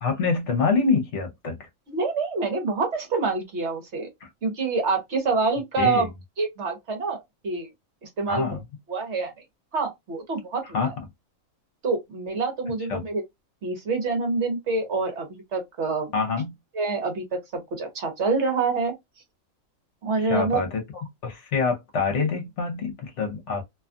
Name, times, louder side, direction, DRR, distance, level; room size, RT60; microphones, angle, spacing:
voice 1, 0.0-1.7 4.2-4.3 5.8-6.1 8.3-8.6 10.7-10.9 12.9-13.1 16.1-16.6 20.2-23.6, left 4 dB, 60° left, 1.1 m, -26 dB
voice 2, 1.9-4.1 4.4-6.1 6.4-7.2 7.4-7.7 8.2-8.4 8.9-9.3 9.7-10.9 11.8-13.2 13.6-16.1 16.7-17.2 17.8-18.9 20.0-20.6, right 4 dB, 55° right, 1.2 m, -26 dB
2.7 x 2.3 x 2.4 m
omnidirectional pair, 1.4 m